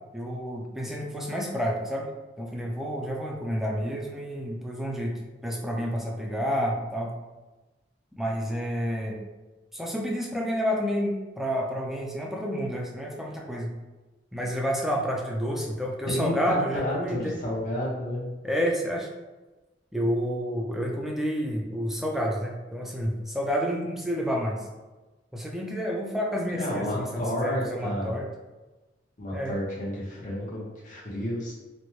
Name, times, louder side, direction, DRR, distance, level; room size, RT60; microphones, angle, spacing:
voice 1, 0.1-2.1 2.4-7.1 8.2-9.2 9.7-13.7 14.3-17.4 18.4-19.1 19.9-24.6 25.3-28.3 29.3-29.6, equal, ahead, -1 dB, 0.4 m, -29 dB
voice 2, 16.1-18.3 26.5-28.2 29.2-31.5, left 1 dB, 45° left, -6 dB, 0.8 m, -31 dB
4.2 x 2.1 x 3.1 m, 1.2 s
head